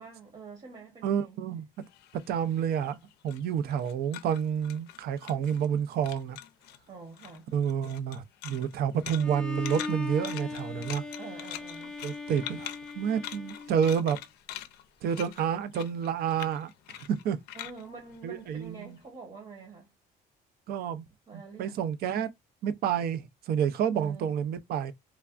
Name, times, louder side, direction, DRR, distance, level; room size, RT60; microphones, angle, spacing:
voice 1, 0.0-1.4 6.9-7.5 11.2-12.0 17.5-19.9 21.3-21.8 23.9-24.3, right 4 dB, 40° right, 1.0 m, -46 dB
voice 2, 1.0-1.7 2.3-3.0 3.2-6.4 7.5-11.0 12.0-14.2 15.0-16.7 17.0-17.4 18.2-19.0 20.7-21.0 21.3-22.3 22.6-24.9, right 8 dB, 65° right, 0.5 m, -29 dB
sound 1, 1.8-5.8 6.0-6.8 7.1-19.0, left 12 dB, 80° left, 0.4 m, -44 dB
Bowed string instrument, 9.2-14.2, left 3 dB, 5° left, 0.6 m, -39 dB
3.2 x 2.3 x 2.4 m
cardioid pair, 110°, 17 cm